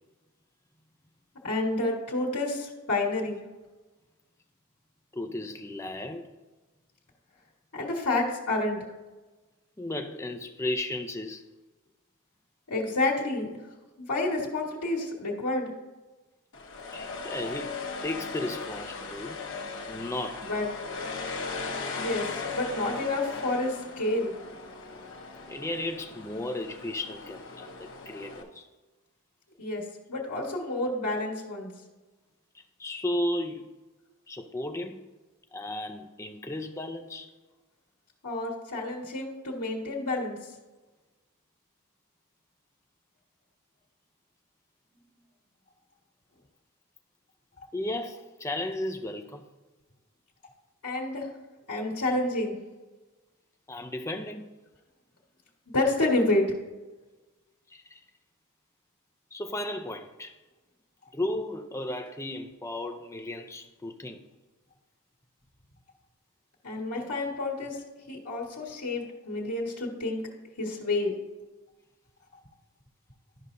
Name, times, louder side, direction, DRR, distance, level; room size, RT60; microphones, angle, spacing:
voice 1, 1.4-3.4 7.7-8.8 12.7-13.5 14.0-15.7 20.4-20.7 21.9-22.3 22.5-24.3 29.6-29.8 30.1-31.7 38.2-40.4 50.8-51.3 51.7-52.6 55.7-56.4 66.6-67.8 68.1-70.2 70.6-71.1, left 2 dB, 90° left, -3 dB, 1.6 m, -29 dB
voice 2, 5.1-6.3 9.8-11.5 16.9-19.4 19.9-20.5 25.5-28.7 32.5-33.7 34.3-35.1 35.5-37.3 47.7-49.4 53.7-54.5 57.7-58.0 59.3-60.3 61.1-64.2, left 1 dB, 15° left, 6 dB, 0.5 m, -34 dB
sound 1, 16.5-28.4, left 4 dB, 60° left, 1.1 m, -38 dB
12.0 x 5.4 x 2.6 m, 1.2 s
head